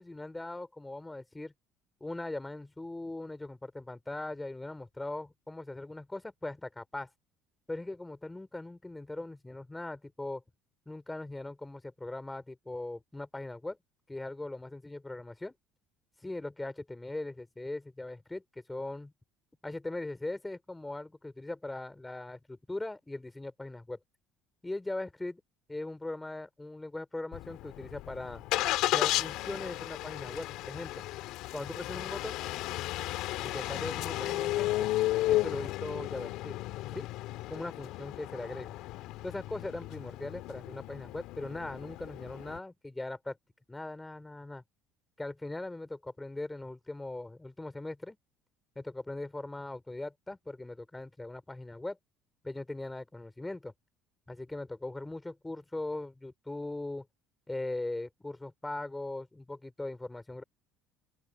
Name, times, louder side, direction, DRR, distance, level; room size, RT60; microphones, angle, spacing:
voice 1, 0.0-1.5 2.0-7.1 7.7-10.4 10.9-13.8 14.1-15.5 16.2-19.1 19.6-24.0 24.6-25.4 25.7-28.4 28.9-31.0 31.5-32.4 33.4-34.9 35.3-36.6 36.9-37.1 37.5-38.7 39.2-43.4 43.7-44.6 45.2-48.2 48.7-52.0 52.4-53.7 54.3-57.1 57.5-60.4, left 2 dB, 10° left, 4.5 m, -40 dB
Engine starting, 27.3-42.6, left 17 dB, 70° left, 2.2 m, -34 dB
open air
hypercardioid pair, 75°, 0 cm